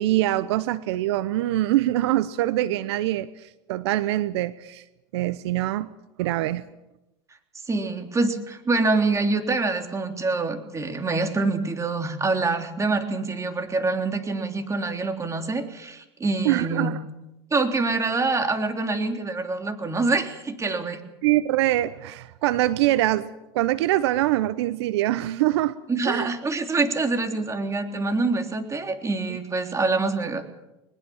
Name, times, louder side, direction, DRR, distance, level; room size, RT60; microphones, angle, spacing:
voice 1, 0.0-4.8 5.1-5.9 6.2-6.7 16.4-17.0 21.2-23.3 23.5-25.8 26.1-26.3, right 15 dB, 80° right, 16 dB, 0.8 m, -24 dB
voice 2, 7.7-17.0 17.5-21.0 25.9-30.4, right 3 dB, 20° right, 5 dB, 3.5 m, -25 dB
21.0 x 21.0 x 7.2 m, 0.95 s
hypercardioid pair, 95°, 14 cm